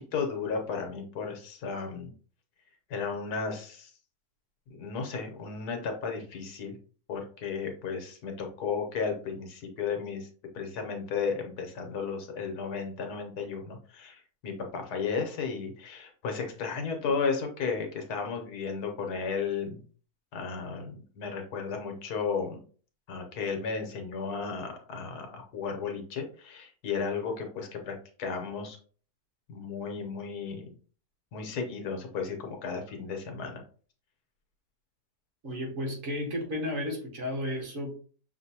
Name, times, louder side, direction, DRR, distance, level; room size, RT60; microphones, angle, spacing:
voice 1, 0.0-2.1 2.9-3.9 4.7-6.8 7.1-10.3 10.5-19.8 20.3-22.6 23.1-28.8 29.5-30.6 31.3-33.6, left 5 dB, 85° left, 3 dB, 1.5 m, -34 dB
voice 2, 35.4-37.9, left 1 dB, 60° right, 0 dB, 1.7 m, -33 dB
5.9 x 2.7 x 2.8 m, 0.43 s
omnidirectional pair, 1.6 m